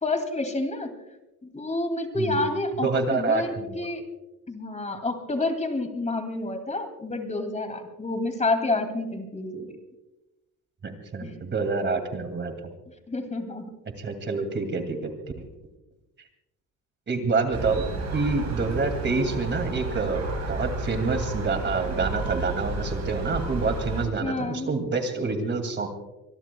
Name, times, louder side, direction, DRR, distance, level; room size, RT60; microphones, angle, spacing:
voice 1, 0.0-0.9 1.4-4.0 4.5-9.8 11.2-11.4 13.1-13.7 24.2-24.8, left 2 dB, 20° left, 6 dB, 2.5 m, -29 dB
voice 2, 2.8-3.9 10.8-12.5 14.0-15.1 15.4-15.5 17.1-17.9 18.1-20.2 20.5-25.9, right 4 dB, 35° right, 6 dB, 2.5 m, -27 dB
Gull seagull, 17.5-24.1, right 2 dB, 55° right, 7.9 m, -31 dB
25.0 x 21.5 x 2.3 m, 0.97 s
cardioid pair, 130°, 34 cm